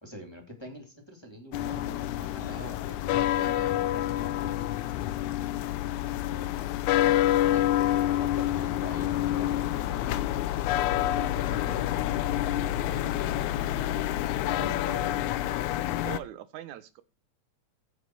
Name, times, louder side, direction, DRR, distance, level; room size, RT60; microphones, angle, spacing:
voice 1, 0.0-4.6 7.5-10.4 10.8-12.1 14.5-15.1, equal, 10° left, 1 dB, 2.6 m, -45 dB
sound 1, 1.5-16.2, left 13 dB, 85° left, 2.1 m, -28 dB
voice 2, 16.0-17.0, right 12 dB, 85° right, 14 dB, 2.3 m, -42 dB
15.5 x 5.3 x 4.6 m, 0.29 s
omnidirectional pair, 3.3 m